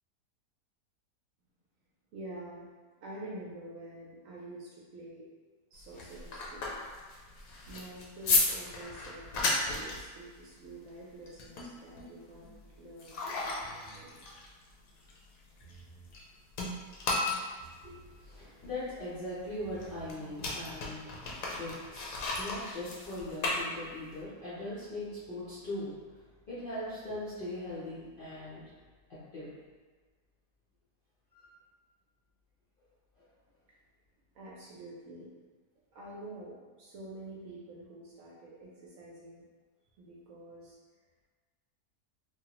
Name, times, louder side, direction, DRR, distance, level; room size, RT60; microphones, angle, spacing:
voice 1, 2.1-2.7 3.0-6.7 7.1-7.3 7.7-14.3 17.0-17.3 34.3-35.4 35.9-39.4 40.0-40.8, right 2 dB, 70° right, -5 dB, 0.8 m, -47 dB
sound 1, 5.7-16.2 16.5-24.2, left 3 dB, 70° left, 0.9 m, -35 dB
sound 2, 13.6-14.1 15.5-16.1 17.6-18.1 19.5-20.1, right 5 dB, 30° right, 0.6 m, -55 dB
voice 2, 17.8-21.3 21.6-26.0 26.5-28.6 29.1-29.5, left 1 dB, 55° left, -11 dB, 0.6 m, -40 dB
3.0 x 2.4 x 2.8 m, 1.4 s
omnidirectional pair, 1.7 m